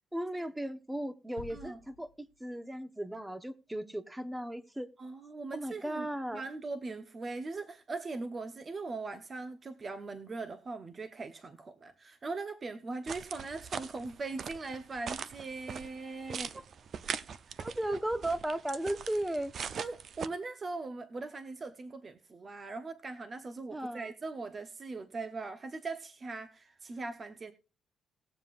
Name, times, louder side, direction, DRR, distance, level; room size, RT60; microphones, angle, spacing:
voice 1, 0.1-4.9 5.5-6.4 16.3-16.4 17.6-19.5 23.7-24.1, right 1 dB, 10° right, 1.0 m, -36 dB
sound 1, 1.4-2.8, left 9 dB, 90° left, 1.0 m, -52 dB
voice 2, 5.0-16.6 17.5-17.6 19.7-27.5, right 3 dB, 35° right, 0.9 m, -40 dB
sound 2, 13.1-20.3, right 7 dB, 55° right, 0.6 m, -41 dB
19.5 x 7.5 x 2.5 m
cardioid pair, 90°, 0 cm